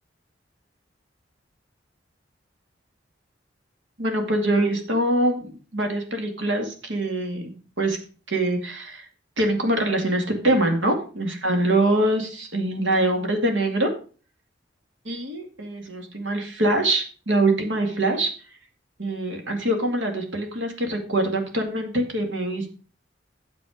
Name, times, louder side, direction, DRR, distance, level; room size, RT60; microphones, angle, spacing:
voice 1, 4.0-7.5 7.8-8.0 8.3-9.1 9.4-13.9 15.0-18.3 19.0-22.7, right 1 dB, 85° right, 4 dB, 2.3 m, -24 dB
9.7 x 7.1 x 5.1 m, 0.37 s
head